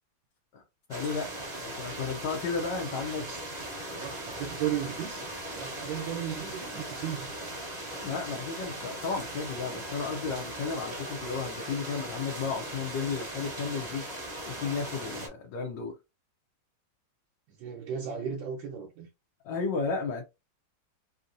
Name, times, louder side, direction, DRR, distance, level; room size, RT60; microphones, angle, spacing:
voice 1, 0.9-3.2 3.9-4.1 8.0-14.1 14.5-16.0 19.4-20.2, left 5 dB, 70° left, 1.3 m, -33 dB
sound 1, 0.9-15.3, right 1 dB, 30° right, 0.8 m, -39 dB
voice 2, 2.9-3.4 3.7-7.3 17.5-19.1, right 9 dB, 75° right, 1.4 m, -36 dB
3.5 x 2.7 x 2.5 m
omnidirectional pair, 2.2 m